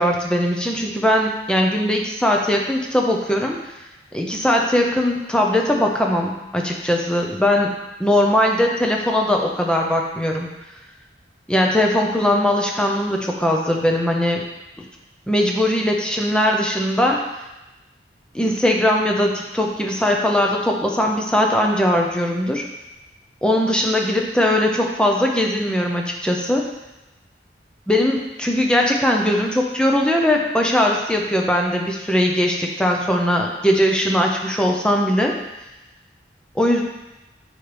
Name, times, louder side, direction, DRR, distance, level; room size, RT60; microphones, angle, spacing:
voice 1, 0.0-3.6 4.1-7.7 8.0-10.5 11.5-14.4 15.3-17.2 18.3-22.6 23.4-26.6 27.9-35.3 36.6-36.8, left 1 dB, 5° left, 0 dB, 0.7 m, -20 dB
7.6 x 4.8 x 3.4 m, 0.99 s
head